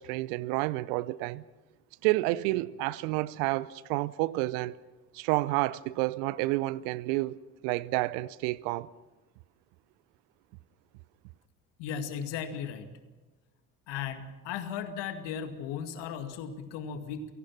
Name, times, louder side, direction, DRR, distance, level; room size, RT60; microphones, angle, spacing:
voice 1, 0.0-1.4 2.0-4.7 5.1-8.9, right 19 dB, 65° right, 0.8 m, -30 dB
voice 2, 11.8-12.9 13.9-17.3, left 7 dB, 65° left, 2.2 m, -36 dB
29.0 x 18.0 x 5.9 m
figure-of-eight pair, 50°, 46 cm